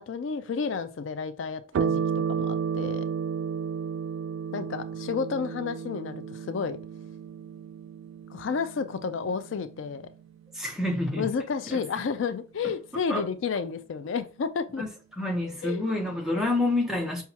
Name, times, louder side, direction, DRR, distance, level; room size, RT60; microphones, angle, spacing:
voice 1, 0.0-2.0 2.4-3.1 4.5-6.8 8.3-10.1 11.2-14.8 15.6-15.9 16.4-16.5, left 5 dB, 80° left, 0.4 m, -31 dB
sound 1, 1.7-10.6, right 7 dB, 90° right, 0.3 m, -32 dB
voice 2, 10.5-11.3 11.7-11.8 13.1-13.2 14.8-14.9 15.2-17.2, left 2 dB, ahead, 0.9 m, -28 dB
5.6 x 2.3 x 2.8 m
head